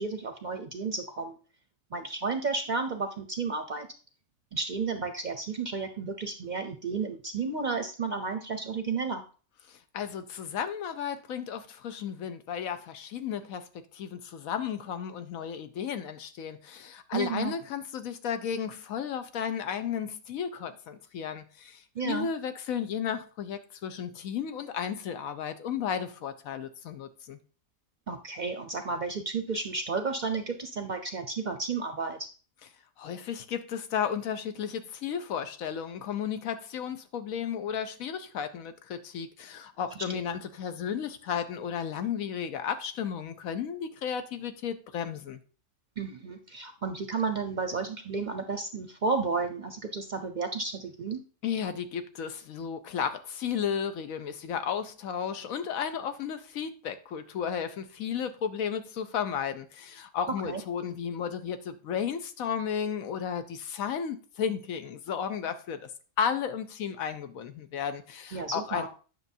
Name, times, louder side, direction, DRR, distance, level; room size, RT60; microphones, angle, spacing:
voice 1, 0.0-1.4 1.9-3.9 4.5-9.2 17.1-17.5 21.9-22.3 28.1-32.2 40.1-40.2 46.0-51.2 60.4-60.6 68.3-68.9, right 4 dB, 50° right, 0.6 m, -32 dB
voice 2, 9.7-27.4 33.0-45.4 51.4-65.9 66.2-68.9, left 8 dB, 85° left, 1.2 m, -34 dB
9.7 x 6.0 x 2.7 m
omnidirectional pair, 1.4 m